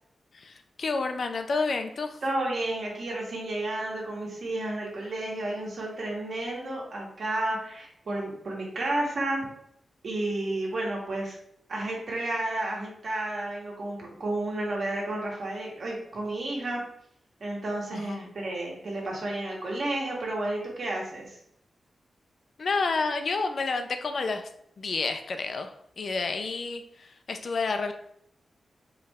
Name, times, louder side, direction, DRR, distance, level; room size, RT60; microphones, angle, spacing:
voice 1, 0.3-2.2 17.9-18.3 22.6-24.5 24.8-27.9, left 4 dB, 55° left, 6 dB, 0.4 m, -30 dB
voice 2, 2.2-9.4 10.0-11.4 11.7-16.8 17.4-21.4, right 2 dB, 55° right, -2 dB, 1.5 m, -31 dB
4.5 x 3.2 x 3.5 m, 0.71 s
wide cardioid pair, 135°, 0 cm